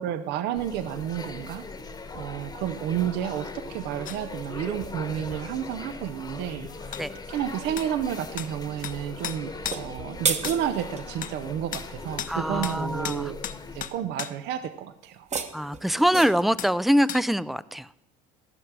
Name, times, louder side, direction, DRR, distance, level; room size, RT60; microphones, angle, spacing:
voice 1, 0.0-1.7 2.1-7.0 7.3-13.4 13.7-15.3, right 10 dB, 70° right, 12 dB, 0.6 m, -31 dB
sound 1, 0.5-13.9, left 3 dB, 20° left, 1.1 m, -40 dB
sound 2, 4.0-4.2 6.9-7.1 7.8-7.9 8.4-8.5 8.8-9.0 9.2-9.8 10.4-10.6 11.2-11.4 11.7-11.9 12.2-12.3 12.6-12.8 13.0-14.3 16.6-16.7 17.1-17.2, left 10 dB, 45° left, 0.7 m, -34 dB
sound 3, 9.5-11.1 15.0-16.5, right 6 dB, 35° right, 1.1 m, -32 dB
voice 2, 12.3-13.3 15.5-18.0, equal, ahead, 19 dB, 0.3 m, -24 dB
14.5 x 6.6 x 6.0 m, 0.93 s
supercardioid pair, 100°, 19 cm